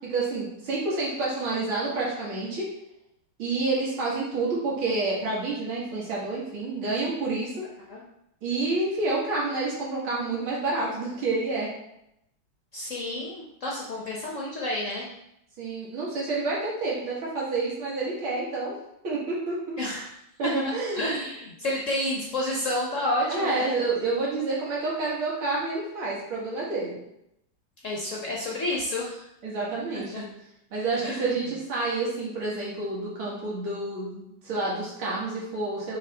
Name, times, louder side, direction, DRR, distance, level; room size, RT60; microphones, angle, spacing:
voice 1, 0.1-2.7 3.4-7.6 8.4-11.7 15.6-18.7 19.0-19.8 20.4-21.2 23.3-26.9 29.4-30.2 30.7-36.0, right 3 dB, 80° right, -6 dB, 2.7 m, -29 dB
voice 2, 12.7-15.1 19.8-20.1 20.4-20.5 21.0-23.8 27.8-29.3 29.9-30.3 30.9-31.3, left 1 dB, 55° left, -3 dB, 0.9 m, -30 dB
6.5 x 4.2 x 3.4 m, 0.81 s
omnidirectional pair, 2.3 m